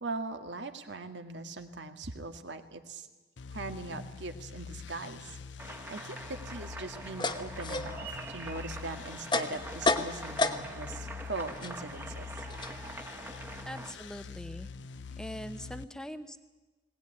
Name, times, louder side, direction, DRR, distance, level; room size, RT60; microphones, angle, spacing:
voice 1, 0.0-3.1 3.5-5.4 5.9-12.5, right 3 dB, 80° right, 7 dB, 1.9 m, -40 dB
sound 1, 3.4-15.8, left 5 dB, 80° left, 0.7 m, -45 dB
sound 2, 5.6-13.9, right 2 dB, 10° right, 1.4 m, -44 dB
sound 3, 6.9-11.0 11.3-14.1, left 3 dB, 25° left, 1.0 m, -34 dB
voice 2, 13.7-14.7 15.2-16.4, equal, 5° left, 10 dB, 0.9 m, -42 dB
20.5 x 18.5 x 10.0 m, 1.2 s
head